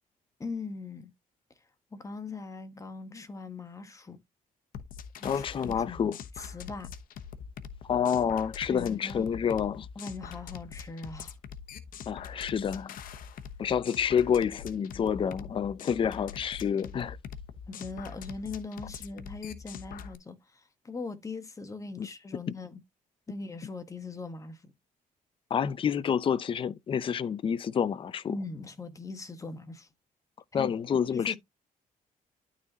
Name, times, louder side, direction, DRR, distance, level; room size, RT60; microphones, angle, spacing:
voice 1, 0.4-1.1 1.9-4.2 5.2-6.9 8.7-9.3 9.9-11.3 17.7-22.8 23.3-24.7 28.3-29.9 30.6-30.7 31.1-31.4, left 3 dB, 20° left, 1.3 m, -40 dB
sound 1, 4.7-20.2, left 7 dB, 75° left, 1.0 m, -43 dB
voice 2, 5.2-6.2 7.8-9.9 12.1-13.0 13.6-17.2 22.0-22.1 25.5-28.2 30.5-31.4, left 7 dB, 40° left, 0.6 m, -28 dB
12.0 x 4.1 x 2.9 m
cardioid pair, 140°, 14 cm